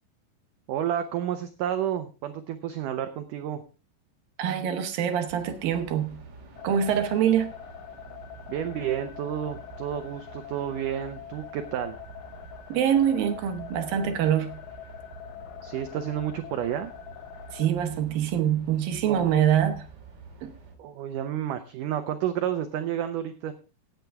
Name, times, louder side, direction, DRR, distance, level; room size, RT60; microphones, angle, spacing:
voice 1, 0.7-3.6 8.5-12.0 15.6-16.9 19.1-19.3 20.8-23.5, right 10 dB, 85° right, 1.8 m, -30 dB
voice 2, 4.4-6.2 6.6-7.5 12.7-14.6 17.5-19.9 20.4-20.5, right 9 dB, 70° right, 2.7 m, -25 dB
sound 1, 5.3-20.8, right 4 dB, 50° right, 3.6 m, -48 dB
sound 2, 6.6-17.7, left 11 dB, 70° left, 1.9 m, -44 dB
16.0 x 9.2 x 3.5 m
omnidirectional pair, 4.8 m